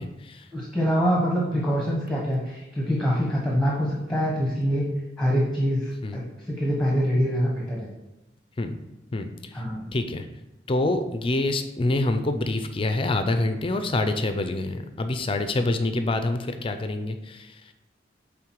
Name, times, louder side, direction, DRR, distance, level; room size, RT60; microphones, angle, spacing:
voice 1, 0.0-0.5 6.0-6.2 8.6-8.8 9.1-9.3 9.9-10.2 10.7-17.5, left 2 dB, 30° left, 8 dB, 0.5 m, -26 dB
voice 2, 0.5-4.9 5.2-6.2 6.5-7.9 9.5-9.9, equal, ahead, -4 dB, 1.1 m, -25 dB
8.6 x 3.7 x 4.6 m, 0.96 s
head